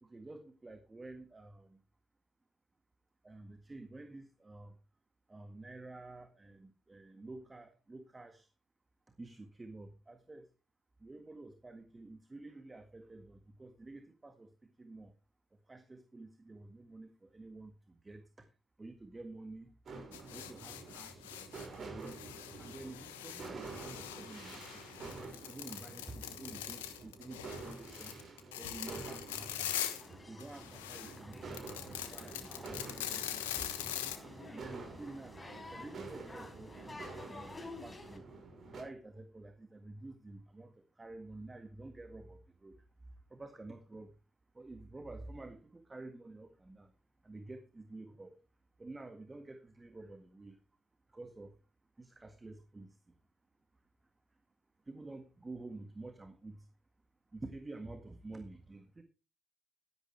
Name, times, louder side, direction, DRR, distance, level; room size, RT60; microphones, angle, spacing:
voice 1, 0.0-1.8 3.2-4.7 5.3-8.5 9.2-10.5 11.0-14.5 14.8-15.1 15.7-17.7 18.0-18.2 18.8-19.7 20.1-21.3 21.6-22.2 22.6-24.8 25.5-28.1 28.6-29.9 30.3-33.9 34.5-35.4 35.7-37.5 37.8-38.3 38.7-42.8 43.3-44.1 44.5-46.9 47.2-48.4 48.8-50.6 51.1-51.5 52.0-52.9 54.9-56.6 57.3-59.0, right 2 dB, 25° right, 8 dB, 1.8 m, -50 dB
sound 1, 19.9-38.8, right 3 dB, 55° right, 5.8 m, -49 dB
sound 2, 20.1-21.7 22.0-30.1 30.4-34.2, left 12 dB, 90° left, 1.1 m, -43 dB
sound 3, 30.0-38.2, left 2 dB, 25° left, 4.4 m, -51 dB
13.5 x 10.5 x 3.3 m, 0.33 s
hypercardioid pair, 45°, 0 cm